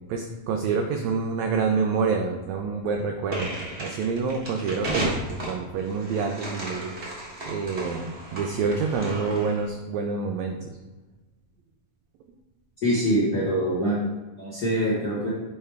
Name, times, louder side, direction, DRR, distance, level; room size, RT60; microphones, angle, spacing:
voice 1, 0.1-3.5 3.8-6.9 7.5-10.8, right 5 dB, 85° right, 4 dB, 1.5 m, -27 dB
sound 1, 3.3-9.6, right 1 dB, 50° right, 0.8 m, -34 dB
voice 2, 12.8-14.0 14.4-15.3, equal, 60° left, -8 dB, 1.0 m, -24 dB
6.6 x 4.4 x 3.4 m, 1.2 s
omnidirectional pair, 3.7 m